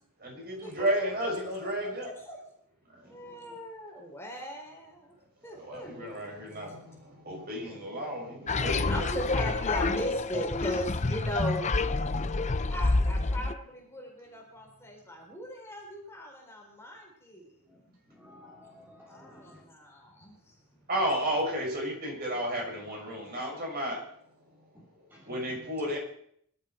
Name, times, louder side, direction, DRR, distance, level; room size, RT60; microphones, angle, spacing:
voice 1, 0.2-2.1 5.6-9.1 20.9-24.0 25.2-26.0, equal, 45° right, -1 dB, 6.7 m, -32 dB
voice 2, 1.8-2.4 3.1-5.1 5.4-6.3 8.8-11.7 12.7-17.9 19.1-20.5, equal, 10° left, -1 dB, 4.3 m, -38 dB
voice 3, 3.0-3.6 12.2-12.8 17.6-19.7 24.7-25.3, left 1 dB, 10° right, -5 dB, 3.2 m, -55 dB
sound 1, 8.5-13.5, left 3 dB, 30° left, 0.6 m, -28 dB
23.0 x 12.5 x 4.6 m, 0.66 s
head